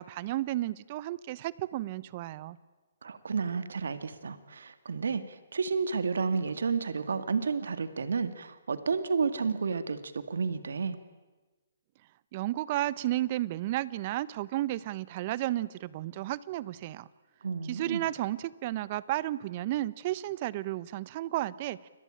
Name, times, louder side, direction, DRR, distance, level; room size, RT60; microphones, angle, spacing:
voice 1, 0.0-2.6 12.3-17.1 17.6-21.9, right 15 dB, 40° right, 19 dB, 1.0 m, -33 dB
voice 2, 3.0-11.0 17.4-18.0, right 5 dB, 75° right, 11 dB, 2.1 m, -31 dB
29.5 x 23.0 x 8.9 m, 1.2 s
hypercardioid pair, 140°, 0 cm